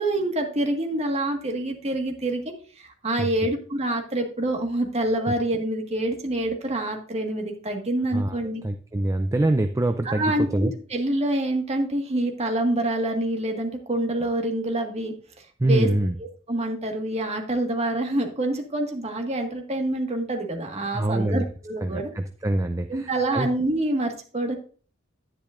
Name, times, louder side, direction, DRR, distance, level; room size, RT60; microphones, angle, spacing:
voice 1, 0.0-8.6 10.0-15.1 15.6-15.9 16.2-22.1 22.9-24.6, right 1 dB, 35° right, 3 dB, 1.6 m, -26 dB
voice 2, 8.1-10.7 15.6-16.1 20.9-21.5 21.8-23.5, right 1 dB, 15° right, 7 dB, 0.4 m, -25 dB
10.0 x 10.0 x 2.5 m, 0.41 s
head